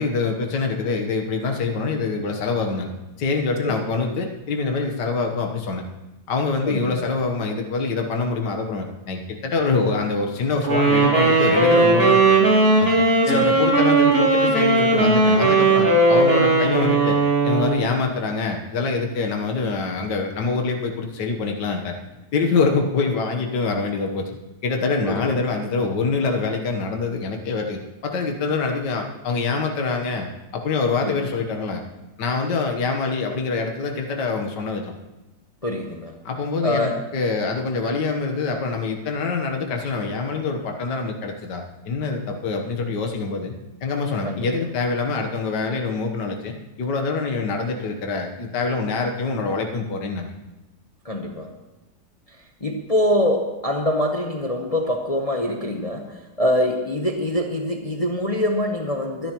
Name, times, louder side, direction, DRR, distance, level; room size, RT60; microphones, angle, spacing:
voice 1, 0.0-2.9 3.2-5.8 6.3-12.5 12.8-22.0 22.3-24.4 24.6-30.3 30.5-31.8 32.2-34.9 36.3-43.5 43.8-50.3, left 4 dB, 80° left, 3 dB, 1.8 m, -25 dB
voice 2, 6.6-7.1 13.2-13.6 25.0-25.3 31.0-31.2 35.6-36.2 36.6-37.0 44.2-44.5 51.0-51.5 52.6-59.3, left 1 dB, 25° left, 2 dB, 0.9 m, -24 dB
Wind instrument woodwind instrument, 10.6-17.9, right 2 dB, 55° right, 3.3 m, -17 dB
23.0 x 10.5 x 3.0 m, 1.1 s
omnidirectional pair, 1.8 m